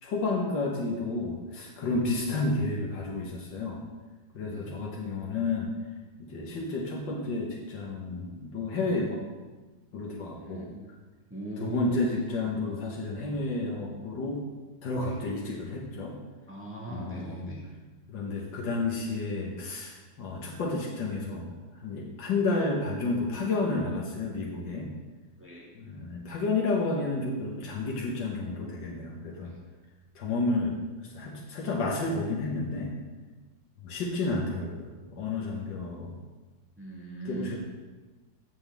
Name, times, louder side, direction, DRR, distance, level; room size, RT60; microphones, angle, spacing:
voice 1, 0.0-3.8 4.3-5.7 6.2-9.2 9.9-10.7 11.6-14.4 14.8-16.2 16.9-17.5 18.1-24.9 25.8-29.5 30.2-32.9 33.8-36.1 37.3-37.6, left 3 dB, 85° left, -2 dB, 2.0 m, -31 dB
voice 2, 4.4-4.8 10.4-10.9 11.3-12.2 15.0-15.3 16.5-17.6 25.4-25.7 29.4-29.6 36.8-37.6, right 2 dB, 5° right, -4 dB, 1.6 m, -40 dB
16.0 x 5.8 x 3.5 m, 1.3 s
omnidirectional pair, 1.9 m